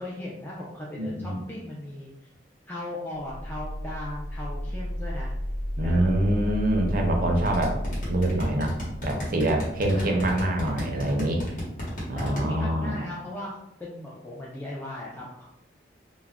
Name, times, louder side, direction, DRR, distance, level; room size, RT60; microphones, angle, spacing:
voice 1, 0.0-2.1 2.7-5.3 5.8-6.2 9.9-10.3 12.2-15.4, left 1 dB, 10° left, -5 dB, 0.3 m, -38 dB
voice 2, 1.0-1.4 5.8-7.7 8.1-8.7 9.0-11.4 12.1-13.0, right 1 dB, 50° right, 2 dB, 0.5 m, -25 dB
sound 1, 3.3-9.8, equal, 70° left, 0.6 m, -33 dB
sound 2, 7.5-12.4, equal, 50° left, 1.0 m, -32 dB
2.3 x 2.0 x 3.3 m, 0.86 s
head